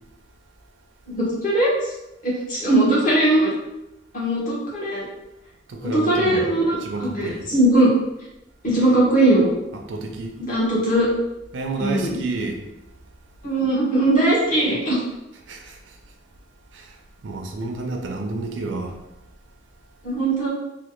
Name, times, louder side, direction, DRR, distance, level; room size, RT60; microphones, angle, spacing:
voice 1, 1.1-1.7 2.2-3.5 4.1-5.0 5.8-7.9 8.6-9.5 10.4-11.1 11.8-12.2 13.4-15.0 20.0-20.5, right 1 dB, 45° left, -6 dB, 1.2 m, -20 dB
voice 2, 5.7-6.5 6.8-7.5 9.7-10.4 11.5-12.6 15.5-16.0 16.7-19.0, right 3 dB, 80° right, 3 dB, 0.5 m, -30 dB
3.2 x 2.2 x 3.0 m, 0.90 s
head